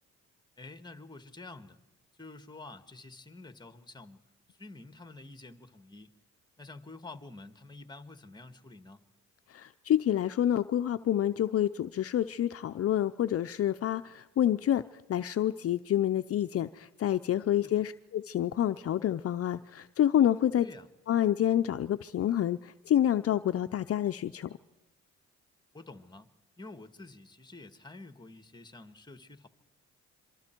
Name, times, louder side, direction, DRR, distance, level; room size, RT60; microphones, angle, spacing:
voice 1, 0.6-1.8 2.2-4.2 4.5-6.2 6.6-9.0 17.7-17.8 20.6-20.9 25.7-26.3 26.6-29.5, left 2 dB, 15° left, 10 dB, 1.6 m, -48 dB
voice 2, 9.5-20.7 21.1-24.6, left 11 dB, 50° left, 10 dB, 0.6 m, -28 dB
26.0 x 24.0 x 4.5 m, 1.0 s
cardioid pair, 90°, 30 cm